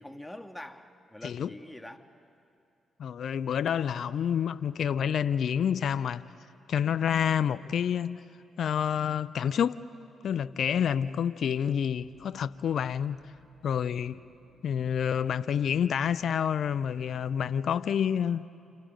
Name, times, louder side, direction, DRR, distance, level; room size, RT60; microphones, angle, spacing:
voice 1, 0.0-2.1 10.8-11.0 14.1-14.3, left 1 dB, 10° left, 1.7 m, -45 dB
voice 2, 3.0-6.2 6.7-8.2 8.6-9.8 10.2-13.2 13.6-14.2 14.6-18.5, left 8 dB, 65° left, 0.5 m, -28 dB
sound 1, 11.9-17.4, equal, 75° right, 3.3 m, -61 dB
29.0 x 29.0 x 5.1 m
supercardioid pair, 50°, 0 cm